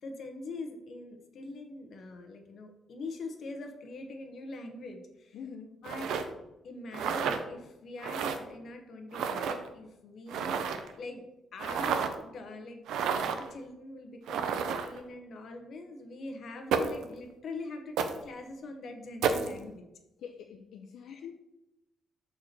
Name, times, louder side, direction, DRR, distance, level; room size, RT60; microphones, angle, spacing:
voice 1, 0.0-5.4 5.8-6.1 6.6-11.2 11.5-12.8 13.2-19.8 21.1-21.2, left 2 dB, 50° left, 4 dB, 1.1 m, -43 dB
voice 2, 5.3-5.8 20.2-21.3, left 7 dB, 70° left, 3 dB, 0.5 m, -44 dB
sound 1, 5.8-6.2 6.9-7.4 8.0-8.4 9.1-9.6 10.3-10.9 11.6-12.1 12.9-13.5 14.3-15.0 16.7-17.0 18.0-18.2 19.2-19.5, right 6 dB, 85° right, 0.6 m, -30 dB
6.6 x 4.7 x 4.4 m, 0.91 s
cardioid pair, 150°, 0 cm